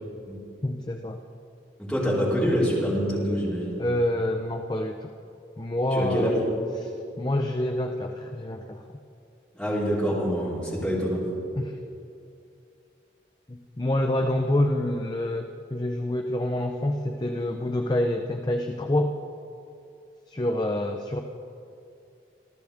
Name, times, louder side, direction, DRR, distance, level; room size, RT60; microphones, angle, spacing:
voice 1, 0.6-1.2 3.8-5.1 5.6-6.4 6.8-6.9 7.2-8.8 11.6-11.8 13.5-19.2 20.3-21.2, left 1 dB, 20° left, 4 dB, 0.6 m, -27 dB
voice 2, 1.8-3.8 5.9-6.4 9.5-11.2, equal, 5° left, -9 dB, 4.5 m, -26 dB
27.0 x 14.0 x 3.6 m, 2.6 s
head